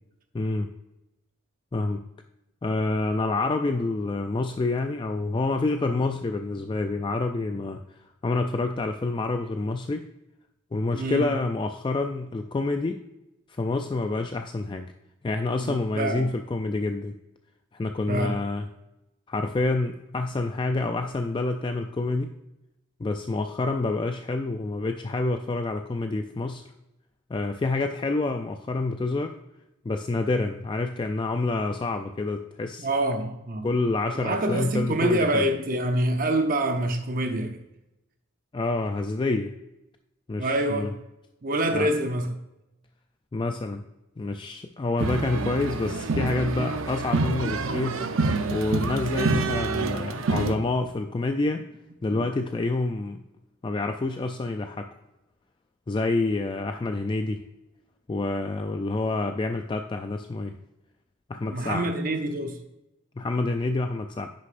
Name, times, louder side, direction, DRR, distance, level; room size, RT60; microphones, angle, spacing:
voice 1, 0.3-0.7 1.7-2.0 2.6-7.8 8.2-10.1 10.7-13.0 13.5-14.9 15.2-17.2 17.7-18.7 19.3-22.3 23.0-26.6 27.3-29.4 29.9-32.9 33.6-35.4 38.5-39.5 40.3-40.9 41.7-41.9 43.3-43.8 44.2-48.0 48.5-51.7 52.0-53.2 53.6-54.9 55.9-57.4 58.1-60.5 61.3-61.9 63.2-64.3, left 3 dB, 25° left, 0.3 m, -27 dB
voice 2, 10.9-11.4 15.6-16.3 18.1-18.4 32.8-33.7 34.1-37.6 40.4-41.0 41.4-42.3 52.1-52.3 61.5-62.6, right 1 dB, 45° right, 0.7 m, -26 dB
sound 1, 45.0-50.5, right 3 dB, 90° right, 0.6 m, -27 dB
9.9 x 6.6 x 2.5 m
head